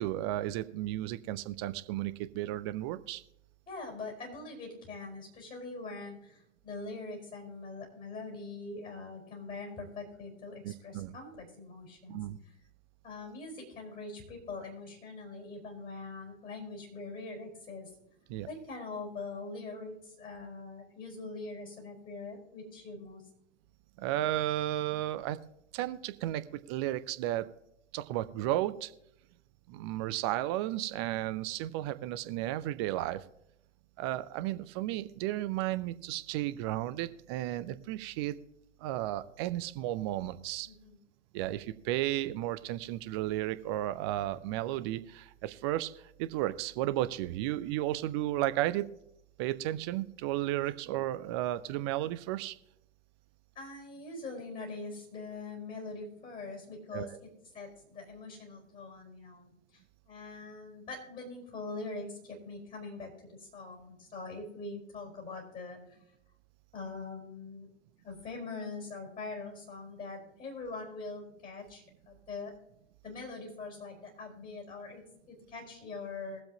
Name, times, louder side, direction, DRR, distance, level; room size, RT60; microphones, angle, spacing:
voice 1, 0.0-3.2 10.6-11.1 12.1-12.4 18.3-18.5 24.0-25.4 25.7-27.5 27.9-28.9 29.7-33.2 34.0-38.3 38.8-40.7 41.3-45.9 46.2-48.9 49.4-52.5 56.9-57.2, right 14 dB, 20° right, 13 dB, 0.4 m, -33 dB
voice 2, 3.7-12.2 13.0-17.9 18.5-23.2 40.6-41.0 50.6-50.7 53.5-57.3 57.5-66.0 66.7-67.7 68.0-72.5 73.0-76.4, left 3 dB, 20° left, 1 dB, 4.3 m, -43 dB
21.5 x 7.7 x 2.8 m, 0.79 s
figure-of-eight pair, 105°, 38 cm